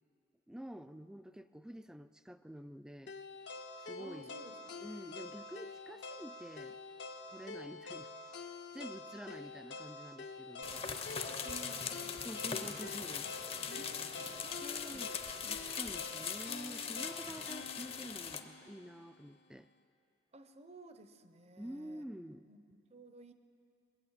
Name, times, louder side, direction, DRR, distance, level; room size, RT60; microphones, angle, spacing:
voice 1, 0.5-3.1 3.8-4.3 4.8-6.8 7.3-8.1 8.7-10.7 12.2-13.4 14.6-19.7 21.6-22.5, equal, 5° right, 12 dB, 0.3 m, -48 dB
sound 1, 3.1-19.2, left 3 dB, 70° left, 0.8 m, -47 dB
voice 2, 4.0-4.8 10.7-10.9 11.2-12.7 13.7-15.1 16.9-17.6 20.3-22.0 22.4-23.3, right 2 dB, 35° right, 10 dB, 0.7 m, -56 dB
sound 2, 10.6-18.4, left 6 dB, 30° left, 0.6 m, -41 dB
21.0 x 8.9 x 7.3 m, 2.7 s
head